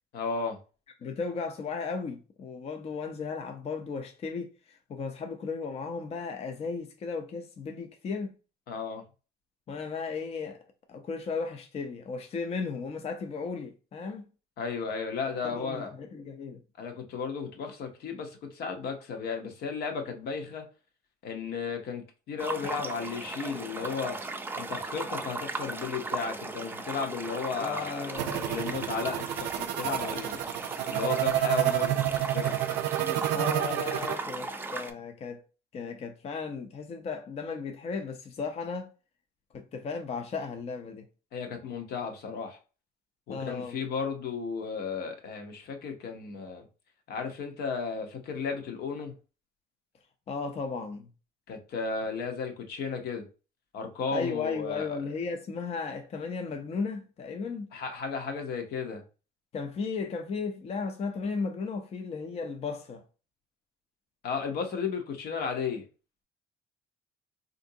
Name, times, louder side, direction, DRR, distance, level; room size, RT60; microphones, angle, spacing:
voice 1, 0.1-0.6 8.7-9.0 14.6-15.9 16.8-20.7 21.2-24.2 24.5-30.4 30.9-32.6 33.0-33.3 41.3-42.6 43.3-46.6 47.1-49.1 51.5-53.3 53.7-55.0 57.7-59.0 64.2-65.9, left 5 dB, 70° left, 0.8 m, -34 dB
voice 2, 1.0-8.3 9.7-10.6 10.9-14.2 15.4-16.6 27.6-28.4 33.3-35.4 35.7-38.9 39.5-41.0 43.3-43.8 50.3-51.1 54.1-57.7 59.5-63.0, left 5 dB, 40° left, 0.5 m, -35 dB
sound 1, 22.4-34.9, right 3 dB, 10° right, 0.4 m, -37 dB
sound 2, 28.2-34.1, right 13 dB, 90° right, 0.4 m, -29 dB
3.6 x 2.6 x 2.7 m
cardioid pair, 110°, 17 cm